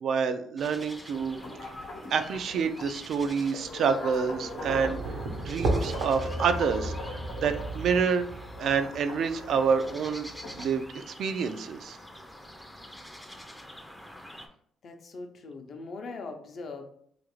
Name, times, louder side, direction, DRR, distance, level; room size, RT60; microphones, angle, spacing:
voice 1, 0.0-1.4 2.1-5.0 5.4-6.9 7.4-8.2 8.6-10.3 10.6-12.0, right 6 dB, 70° right, 9 dB, 0.3 m, -27 dB
sound 1, 0.6-14.5, equal, 5° left, 0.4 m, -47 dB
sound 2, 1.1-10.7, left 2 dB, 80° left, 0.8 m, -42 dB
sound 3, 4.5-10.8, right 2 dB, 85° right, 0.7 m, -34 dB
voice 2, 14.8-16.8, left 3 dB, 55° left, 4 dB, 0.6 m, -40 dB
3.1 x 2.4 x 3.0 m, 0.64 s
cardioid pair, 90°, 0 cm